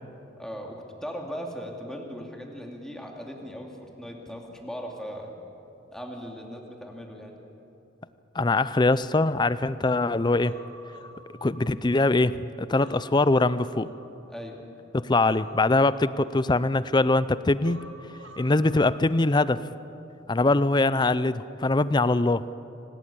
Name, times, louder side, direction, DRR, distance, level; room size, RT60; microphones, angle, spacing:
voice 1, 0.4-5.3 5.9-7.4 14.3-14.7, equal, 5° left, 0 dB, 2.6 m, -38 dB
voice 2, 8.3-10.5 11.4-13.9 14.9-17.9 18.4-19.6 20.3-22.5, left 2 dB, 25° left, 16 dB, 0.5 m, -23 dB
Human voice, 10.4-12.2 12.6-14.6 15.2-17.0 17.6-19.6 19.8-20.0, right 1 dB, 80° right, 2.1 m, -49 dB
26.0 x 18.5 x 8.7 m, 2.9 s
head